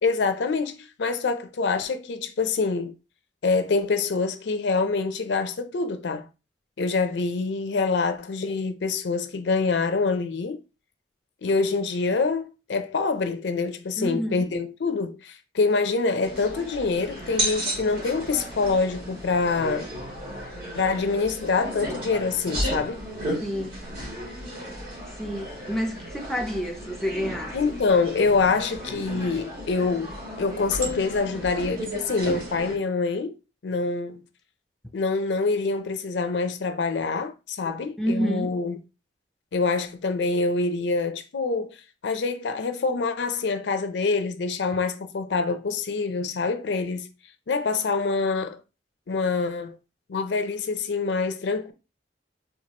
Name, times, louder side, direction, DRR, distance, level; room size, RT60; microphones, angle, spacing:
voice 1, 0.0-2.9 3.4-6.3 6.8-10.6 11.4-19.9 20.7-23.0 27.5-33.4 33.6-34.2 34.9-38.8 39.5-41.8 42.0-47.1 47.5-48.6 49.1-49.8 50.1-51.7, left 4 dB, 70° left, 0.5 m, -25 dB
voice 2, 14.0-14.5 23.4-23.8 25.2-27.5 38.0-38.5, equal, ahead, 0.4 m, -29 dB
sound 1, 16.2-32.8, right 1 dB, 55° right, 2.1 m, -34 dB
4.5 x 2.3 x 2.9 m
head